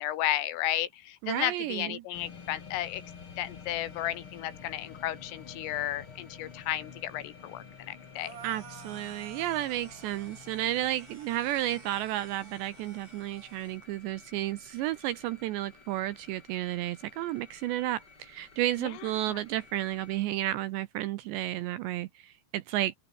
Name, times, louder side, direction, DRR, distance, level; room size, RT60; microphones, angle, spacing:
voice 1, 0.0-3.0 3.4-8.4 18.8-19.4, left 13 dB, 80° left, 4.3 m, -33 dB
voice 2, 1.2-2.0 8.4-23.0, right 14 dB, 80° right, 2.6 m, -32 dB
sound 1, 2.1-15.1 15.5-15.6, left 6 dB, 45° left, 1.7 m, -50 dB
sound 2, 2.1-20.3, left 4 dB, 25° left, 3.5 m, -56 dB
sound 3, 8.2-13.8, right 7 dB, 50° right, 4.6 m, -51 dB
omnidirectional pair, 5.9 m